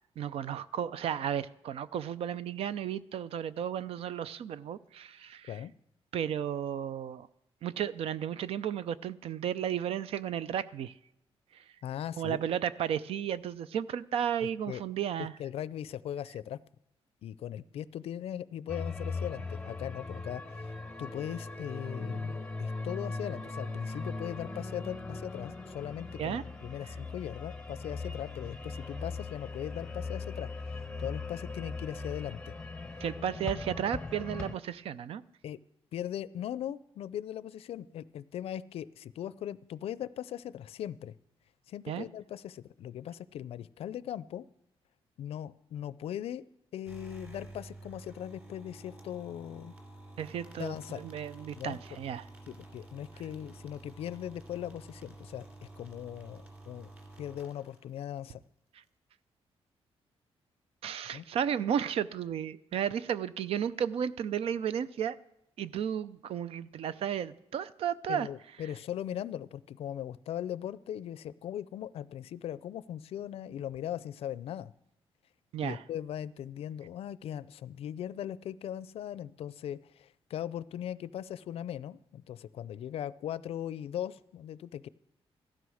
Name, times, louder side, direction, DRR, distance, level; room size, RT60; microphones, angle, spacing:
voice 1, 0.2-5.6 6.1-7.3 7.6-10.9 11.5-11.6 12.2-15.3 26.2-26.4 33.0-35.2 41.9-42.0 50.2-52.2 60.8-65.2 65.6-68.3 75.5-75.8, right 9 dB, 70° right, 16 dB, 0.5 m, -33 dB
voice 2, 11.8-12.4 14.7-14.8 15.4-16.6 17.2-32.6 33.0-33.1 35.4-35.6 35.9-41.1 41.7-44.4 45.2-46.4 46.7-49.7 50.6-51.0 51.6-51.8 52.5-55.4 55.8-56.9 57.2-58.4 61.1-61.2 68.1-74.7 75.6-84.9, left 10 dB, 70° left, 18 dB, 0.5 m, -39 dB
sound 1, 18.7-34.5, left 3 dB, 10° left, 0.7 m, -39 dB
sound 2, 46.8-58.2, right 2 dB, 15° right, 2.4 m, -50 dB
15.5 x 12.5 x 6.4 m, 0.82 s
wide cardioid pair, 180°, 10 cm